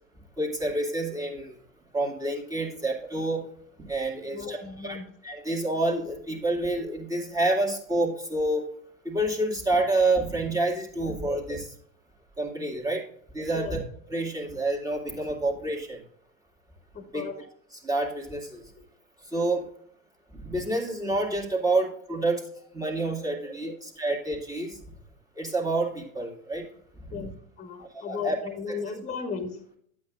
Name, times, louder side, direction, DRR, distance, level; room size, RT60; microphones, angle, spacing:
voice 1, 0.4-1.6 1.9-3.5 3.8-5.0 5.2-8.6 9.0-11.7 12.4-13.0 13.3-13.8 14.1-16.0 17.1-17.2 17.8-18.6 19.3-19.6 20.3-22.4 22.7-24.8 25.4-26.6 27.1-27.2 27.8-28.4, right 2 dB, 10° right, -1 dB, 2.1 m, -28 dB
voice 2, 4.3-5.1 11.0-11.3 13.5-13.7 16.9-17.5 18.7-18.9 21.7-21.9 22.1-22.3 22.7-22.8 23.6-23.8 27.1-27.3 27.6-29.6, left 5 dB, 20° left, 7 dB, 1.6 m, -36 dB
11.0 x 8.4 x 2.5 m, 0.63 s
hypercardioid pair, 95°, 39 cm